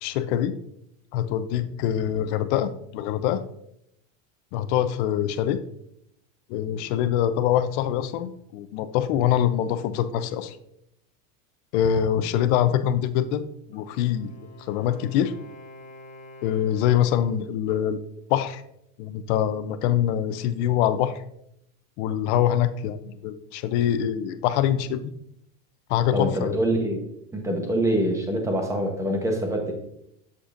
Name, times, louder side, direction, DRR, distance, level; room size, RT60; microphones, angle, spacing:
voice 1, 0.0-0.6 1.1-3.4 4.5-5.6 6.5-10.6 11.7-13.4 13.7-14.3 14.7-15.3 16.4-18.6 19.0-21.2 22.0-25.1 25.9-26.6, left 10 dB, 55° left, 12 dB, 0.6 m, -24 dB
Wind instrument woodwind instrument, 13.7-17.6, left 1 dB, 15° left, 1.4 m, -47 dB
voice 2, 26.1-27.0 27.3-29.7, right 1 dB, 5° right, 3 dB, 0.9 m, -25 dB
7.6 x 6.8 x 2.5 m, 0.78 s
supercardioid pair, 150°, 41 cm